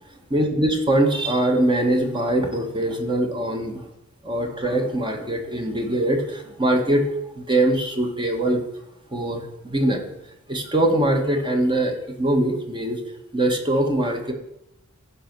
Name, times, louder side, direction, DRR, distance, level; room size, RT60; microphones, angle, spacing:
voice 1, 0.3-3.9 4.2-7.1 7.4-8.6 9.1-10.0 10.5-13.0 13.3-14.3, right 1 dB, 20° right, 3 dB, 1.4 m, -22 dB
15.0 x 5.2 x 6.0 m, 0.85 s
head